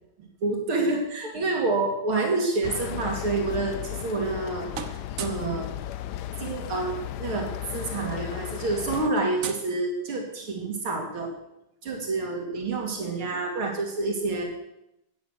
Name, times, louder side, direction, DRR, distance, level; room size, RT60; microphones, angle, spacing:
voice 1, 0.2-4.7 5.2-5.7 6.4-11.3 11.8-14.4, right 3 dB, 85° right, 1 dB, 3.5 m, -28 dB
sound 1, 2.6-9.1, left 12 dB, 70° left, 1.1 m, -35 dB
sound 2, 3.7-4.4 4.7-5.5 6.9-7.0 7.2-7.5 7.7-10.4, right 7 dB, 50° right, 1.2 m, -40 dB
15.5 x 9.9 x 6.6 m, 0.84 s
omnidirectional pair, 2.3 m